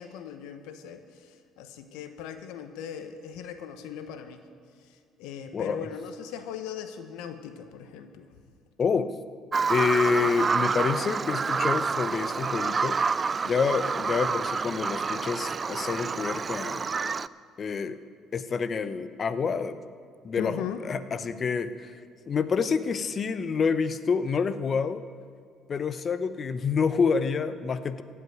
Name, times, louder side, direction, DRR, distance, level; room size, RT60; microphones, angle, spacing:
voice 1, 0.0-4.4 4.8-8.3 20.4-20.8, left 9 dB, 80° left, 8 dB, 1.0 m, -39 dB
voice 2, 5.5-5.9 8.8-9.1 9.7-13.0 13.4-16.9 17.6-18.0 18.3-19.8 20.2-20.6 20.8-21.9 22.3-25.0 25.7-28.0, left 5 dB, 45° left, 12 dB, 0.7 m, -27 dB
Bird vocalization bird call bird song, 9.5-17.3, right 5 dB, 35° right, 0.3 m, -28 dB
15.5 x 5.9 x 9.4 m, 2.1 s
supercardioid pair, 70°, 0 cm